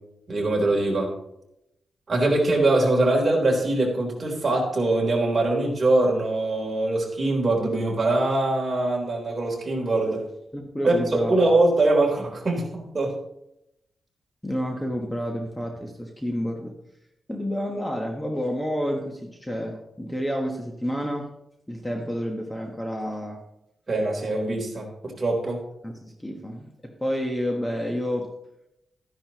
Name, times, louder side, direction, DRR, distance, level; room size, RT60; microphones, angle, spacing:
voice 1, 0.3-1.1 2.1-10.2 10.8-13.1 23.9-25.6, right 2 dB, 35° right, -1 dB, 3.7 m, -23 dB
voice 2, 10.5-11.3 14.4-16.8 17.3-21.3 21.7-23.4 25.8-28.3, equal, 10° left, 1 dB, 1.3 m, -29 dB
13.5 x 10.5 x 3.0 m, 0.82 s
wide cardioid pair, 130°, 0 cm